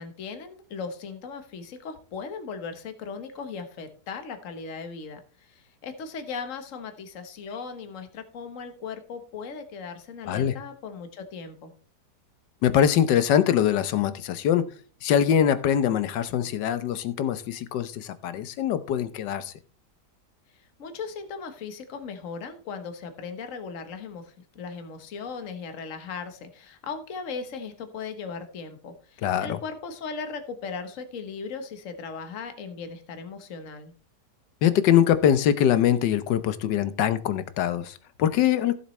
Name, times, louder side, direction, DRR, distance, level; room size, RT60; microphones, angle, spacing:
voice 1, 0.0-11.7 20.8-33.9, left 5 dB, 50° left, 7 dB, 1.5 m, -38 dB
voice 2, 12.6-14.7 15.0-19.5 29.2-29.6 34.6-38.7, left 9 dB, 90° left, 13 dB, 1.4 m, -23 dB
15.5 x 7.1 x 3.2 m, 0.39 s
omnidirectional pair, 1.8 m